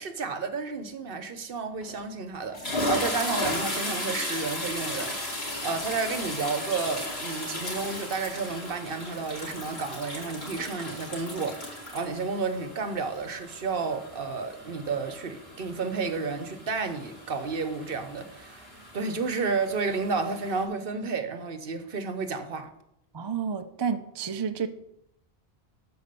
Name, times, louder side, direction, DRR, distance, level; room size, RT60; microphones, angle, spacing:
voice 1, 0.0-22.7, right 4 dB, 65° right, 1.1 m, -31 dB
sound 1, 1.8-2.0 2.4-20.6, left 1 dB, 85° left, 2.6 m, -36 dB
voice 2, 23.1-24.7, right 6 dB, 35° right, 0.5 m, -30 dB
12.0 x 4.8 x 6.8 m
omnidirectional pair, 1.0 m